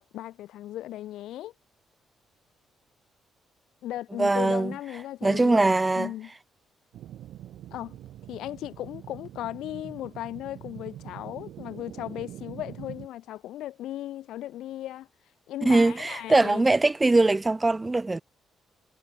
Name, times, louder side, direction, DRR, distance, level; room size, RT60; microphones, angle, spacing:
voice 1, 0.0-1.5 3.8-6.3 7.7-8.0 8.3-15.1 15.5-16.7, left 13 dB, 85° left, 1.5 m, -37 dB
voice 2, 4.2-4.7 5.2-6.1 15.6-18.2, right 2 dB, 20° right, 0.5 m, -22 dB
sound 1, 6.9-13.1, right 12 dB, 80° right, 4.0 m, -44 dB
cardioid pair, 90°, 0 cm